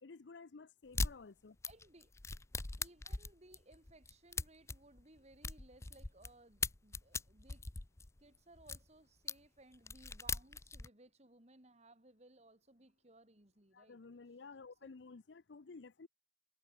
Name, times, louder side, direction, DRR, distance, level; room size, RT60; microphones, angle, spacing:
voice 1, 0.0-1.6 13.7-16.1, left 4 dB, 75° left, 0.6 m, -53 dB
sound 1, 0.9-1.1 1.6-6.3 6.6-8.8 9.3-9.4 9.7-10.9, left 4 dB, 15° left, 0.5 m, -40 dB
voice 2, 1.6-2.1 2.8-7.7 8.2-14.0 14.8-14.9, right 2 dB, 35° right, 3.5 m, -62 dB
head